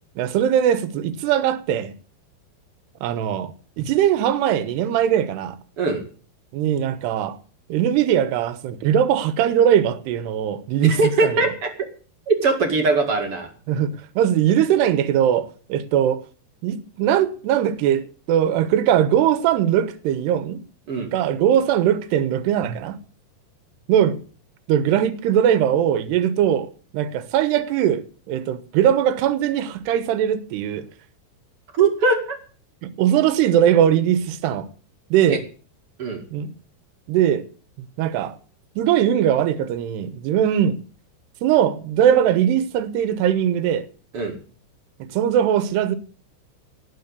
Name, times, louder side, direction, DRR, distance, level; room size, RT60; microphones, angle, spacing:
voice 1, 0.2-1.9 3.0-5.6 6.5-7.4 7.7-11.4 13.7-16.2 16.6-20.6 21.1-23.0 23.9-24.2 24.7-30.9 32.8-34.7 35.1-35.4 36.3-36.5 37.1-37.4 38.0-38.4 38.8-40.8 41.4-43.9 45.0-46.0, right 10 dB, 80° right, 3.1 m, -20 dB
voice 2, 10.8-11.7 12.3-13.5 20.9-21.1 31.7-32.4 35.3-35.4 36.0-36.2 44.1-44.4, right 3 dB, 40° right, 2.5 m, -21 dB
18.5 x 6.4 x 8.3 m
omnidirectional pair, 5.0 m